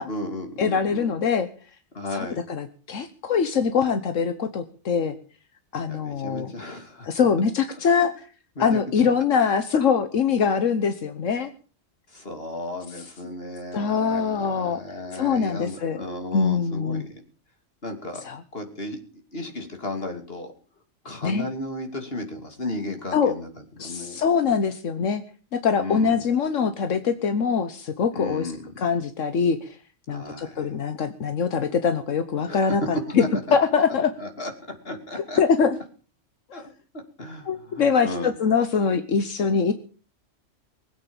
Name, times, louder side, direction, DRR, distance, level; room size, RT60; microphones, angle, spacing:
voice 1, 0.1-1.2 1.9-2.4 5.9-7.1 8.0-8.1 8.6-9.1 12.1-17.2 17.8-19.0 19.3-20.5 21.0-24.2 25.8-26.1 28.1-28.7 30.1-30.7 32.5-33.6 34.2-35.4 36.5-36.6 37.2-38.3, left 1 dB, 50° left, 5 dB, 3.0 m, -34 dB
voice 2, 0.6-1.5 2.1-5.1 5.7-6.5 7.0-8.1 8.6-11.5 13.7-14.8 15.1-16.0 16.3-17.1 18.2-18.4 21.2-21.4 23.1-23.3 23.8-25.2 25.5-28.5 28.8-29.8 30.1-33.2 33.5-34.1 35.4-35.8 36.5-36.6 37.5-39.7, left 6 dB, 80° left, 9 dB, 1.4 m, -23 dB
20.5 x 8.7 x 7.1 m, 0.40 s
omnidirectional pair, 1.3 m